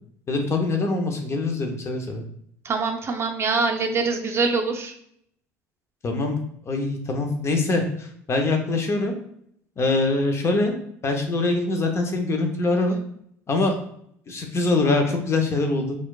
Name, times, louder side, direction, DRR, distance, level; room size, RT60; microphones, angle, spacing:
voice 1, 0.3-2.2 6.0-6.4 6.7-9.1 9.8-10.8 11.0-13.0 13.5-13.7 14.3-15.9, left 3 dB, 35° left, 3 dB, 0.7 m, -23 dB
voice 2, 2.6-4.9, right 4 dB, 30° right, 3 dB, 0.6 m, -24 dB
4.4 x 2.3 x 2.4 m, 0.69 s
hypercardioid pair, 75°, 8 cm